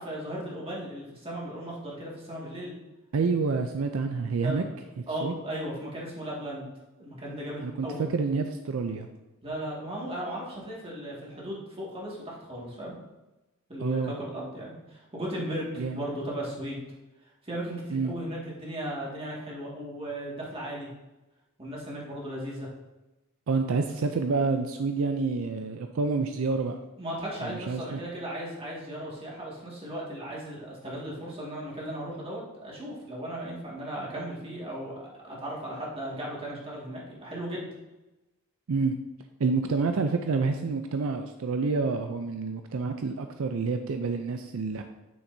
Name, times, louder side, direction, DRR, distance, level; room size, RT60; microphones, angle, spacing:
voice 1, 0.0-2.7 4.4-4.6 5.1-6.7 7.0-8.1 9.4-12.9 13.7-16.8 17.4-20.9 21.6-22.7 27.0-37.7, right 1 dB, 25° right, -4 dB, 2.0 m, -36 dB
voice 2, 3.1-4.6 5.0-5.4 7.6-9.1 13.8-14.1 15.8-16.1 17.9-18.1 23.5-26.8 27.4-28.0 38.7-39.0 39.4-44.8, right 4 dB, 70° right, 6 dB, 0.4 m, -28 dB
8.8 x 6.7 x 2.7 m, 1.0 s
head